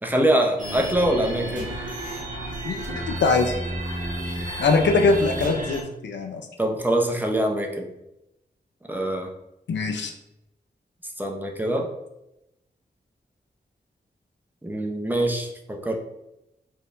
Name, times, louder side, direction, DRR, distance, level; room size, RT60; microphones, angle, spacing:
voice 1, 0.0-1.7 6.6-7.9 8.9-9.3 11.2-11.9 14.6-16.0, right 1 dB, 10° right, 1 dB, 0.6 m, -24 dB
sound 1, 0.6-5.8, right 1 dB, 50° right, 1.0 m, -31 dB
voice 2, 2.6-3.5 4.6-6.4 9.7-10.1, left 3 dB, 85° left, 5 dB, 0.5 m, -22 dB
4.4 x 3.3 x 2.5 m, 0.89 s
cardioid pair, 70°, 18 cm